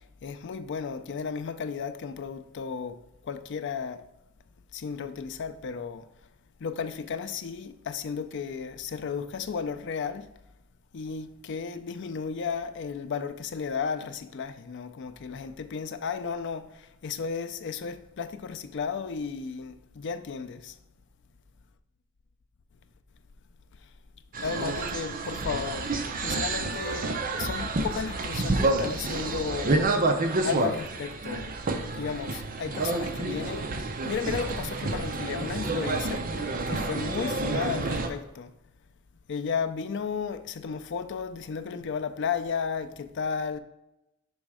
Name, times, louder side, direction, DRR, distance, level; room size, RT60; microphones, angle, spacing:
voice 1, 0.2-4.0 4.7-6.1 6.6-10.3 10.9-20.7 24.4-26.0 26.2-29.9 30.4-31.6 31.8-38.5 39.3-43.6, left 6 dB, 55° left, 0.4 m, -34 dB
sound 1, 24.3-38.1, right 2 dB, 40° right, 0.5 m, -29 dB
6.1 x 3.2 x 4.8 m
head